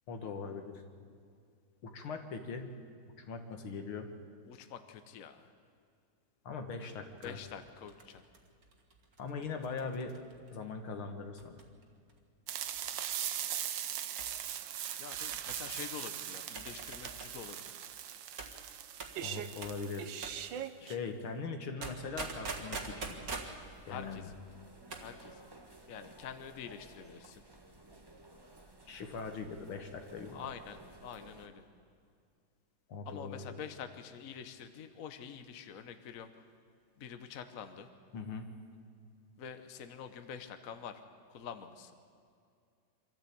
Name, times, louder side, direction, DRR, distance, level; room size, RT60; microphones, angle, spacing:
voice 1, 0.1-0.8 1.8-2.8 3.2-4.1 6.4-7.4 9.2-10.2 10.5-11.6 19.2-20.1 20.8-23.3 23.9-24.2 28.9-30.4 32.9-33.5 38.1-38.5, left 4 dB, 80° left, 6 dB, 2.5 m, -41 dB
voice 2, 4.5-5.5 7.2-8.2 15.0-17.8 23.9-24.4 25.0-25.4 25.9-27.4 30.3-31.7 33.0-36.4 37.0-37.9 39.4-41.0 41.3-42.0, left 7 dB, 50° left, 9 dB, 1.2 m, -46 dB
sound 1, 7.2-10.6 11.4-11.8 12.1-12.2 12.6-13.0 14.2-14.4 15.1-15.8 16.6-17.4 18.4-18.6 19.0-19.2 19.6-19.8 20.2-20.4 21.8-23.6 24.7-25.1 25.4-25.5, right 3 dB, 45° right, 2.1 m, -44 dB
sound 2, 12.5-21.0, right 10 dB, 65° right, 1.4 m, -40 dB
sound 3, 22.8-31.5, right 2 dB, 15° right, 0.9 m, -56 dB
25.0 x 13.5 x 8.6 m, 2.3 s
omnidirectional pair, 2.3 m